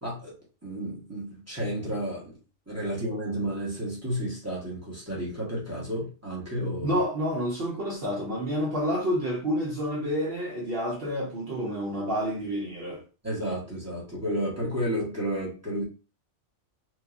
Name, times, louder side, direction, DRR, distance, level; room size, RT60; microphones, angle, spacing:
voice 1, 0.0-0.3 0.6-2.4 2.7-7.0 13.2-15.8, equal, 15° right, 1.0 m, -32 dB
voice 2, 6.8-13.0, equal, 55° right, 0.8 m, -29 dB
3.0 x 2.3 x 2.4 m
omnidirectional pair, 1.3 m